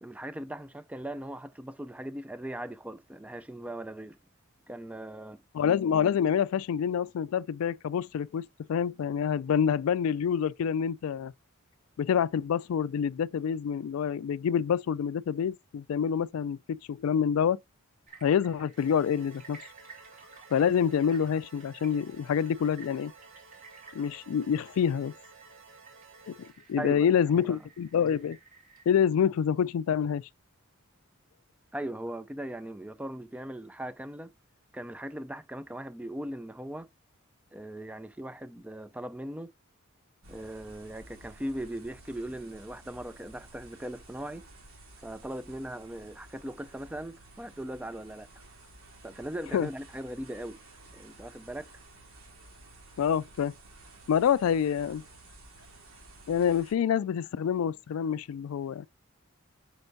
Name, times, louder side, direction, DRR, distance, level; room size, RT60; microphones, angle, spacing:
voice 1, 0.0-4.2 4.7-5.4 26.8-27.6 31.7-34.3 34.7-36.9 37.5-39.5 40.3-44.5 45.0-48.3 49.0-50.6 50.9-51.7, right 1 dB, 5° right, 0.3 m, -39 dB
voice 2, 5.5-11.3 12.0-17.6 18.2-19.6 20.5-23.1 23.9-25.1 26.3-28.4 28.9-30.2 49.5-49.7 53.0-53.5 54.1-55.0 56.3-58.9, left 8 dB, 90° left, 0.3 m, -27 dB
sound 1, 18.1-28.9, right 4 dB, 40° right, 2.5 m, -55 dB
sound 2, 18.8-26.5, right 4 dB, 65° right, 1.3 m, -54 dB
sound 3, 40.2-56.7, right 2 dB, 90° right, 2.7 m, -53 dB
7.8 x 5.3 x 2.6 m
head